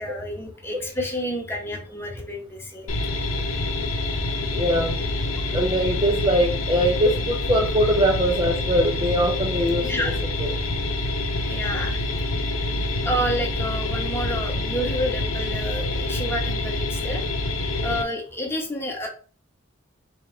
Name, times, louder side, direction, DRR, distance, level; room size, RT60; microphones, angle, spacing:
voice 1, 0.0-2.9 9.9-10.2 11.5-12.3 13.0-17.2 17.8-19.1, equal, 10° left, 1 dB, 0.9 m, -29 dB
sound 1, 2.9-18.0, left 2 dB, 75° left, 0.8 m, -26 dB
voice 2, 4.5-4.9 5.5-9.9 10.4-10.5, equal, 20° right, 2 dB, 0.5 m, -22 dB
3.4 x 2.9 x 4.3 m, 0.37 s
head